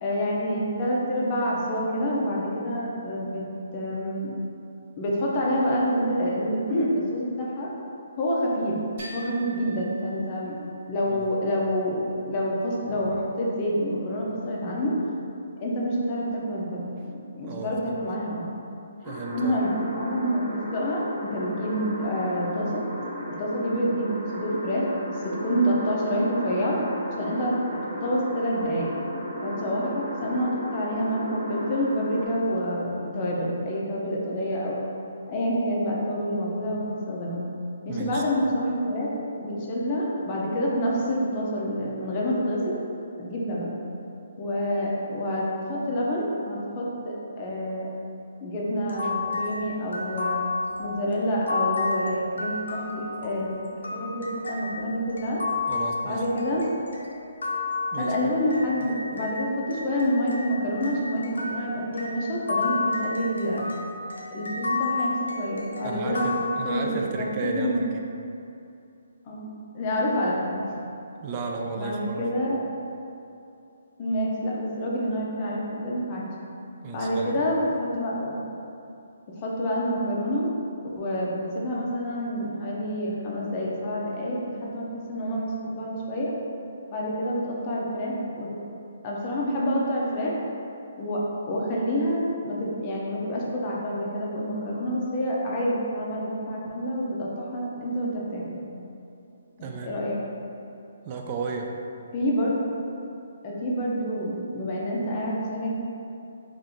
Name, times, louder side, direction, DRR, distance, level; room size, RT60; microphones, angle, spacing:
voice 1, 0.0-3.4 3.7-4.3 5.0-7.7 8.2-8.8 9.1-10.6 10.9-15.0 15.6-18.6 19.3-22.8 23.4-26.8 27.2-28.9 29.4-34.8 35.3-37.5 37.9-39.1 39.4-42.8 43.2-43.7 44.4-47.9 48.4-50.4 50.8-53.6 53.9-55.4 56.0-56.7 58.0-63.7 64.3-67.8 69.3-69.5 69.7-70.7 71.7-72.6 74.0-76.3 76.9-78.4 79.4-80.5 80.8-86.3 86.9-88.5 89.0-90.3 91.0-91.2 91.5-98.6 99.6-100.2 102.1-102.6 103.4-105.7, equal, 30° left, -4 dB, 0.6 m, -27 dB
sound 1, 9.0-10.9, right 1 dB, 50° right, 1.4 m, -43 dB
voice 2, 17.4-18.0 19.1-19.6 30.2-30.4 37.9-38.2 55.7-56.2 57.9-58.2 65.8-67.9 71.2-72.3 76.8-77.5 99.6-99.9 101.0-101.7, right 4 dB, 30° right, 1 dB, 0.3 m, -33 dB
sound 2, 19.0-32.3, equal, 5° right, 0.9 m, -35 dB
sound 3, 48.9-59.4 59.7-67.1, left 3 dB, 85° left, 0.5 m, -32 dB
3.5 x 2.4 x 2.7 m, 2.7 s
hypercardioid pair, 150°, 0 cm